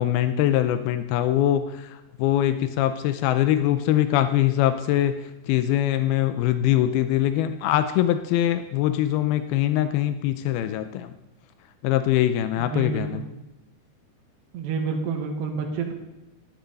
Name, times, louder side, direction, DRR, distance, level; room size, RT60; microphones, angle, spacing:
voice 1, 0.0-1.9 2.2-5.1 5.5-11.1 11.8-13.2, left 12 dB, 90° left, 10 dB, 2.1 m, -22 dB
voice 2, 12.6-13.3 14.5-15.9, right 5 dB, 70° right, 2 dB, 3.8 m, -29 dB
13.0 x 12.0 x 4.1 m, 0.96 s
omnidirectional pair, 5.2 m